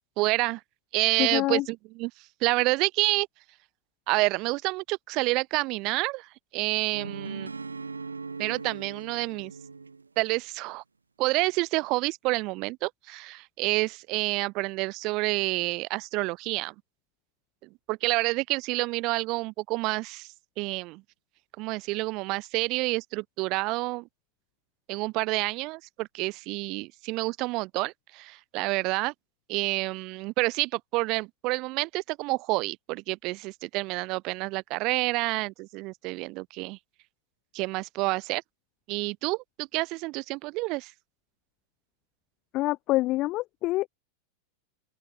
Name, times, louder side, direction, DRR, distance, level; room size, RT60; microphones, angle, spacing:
voice 1, 0.2-0.6 0.9-2.1 2.4-3.3 4.1-7.5 8.4-9.5 10.2-10.8 11.2-16.7 17.6-20.3 20.6-21.0 21.6-24.1 24.9-29.1 29.5-36.8 37.5-38.4 38.9-40.9, right 23 dB, 40° right, 1.8 m, -28 dB
voice 2, 1.2-1.6 42.5-43.9, left 18 dB, 40° left, 0.8 m, -26 dB
sound 1, 6.9-10.1, right 4 dB, 75° right, 5.7 m, -39 dB
open air
figure-of-eight pair, 90°, 0 cm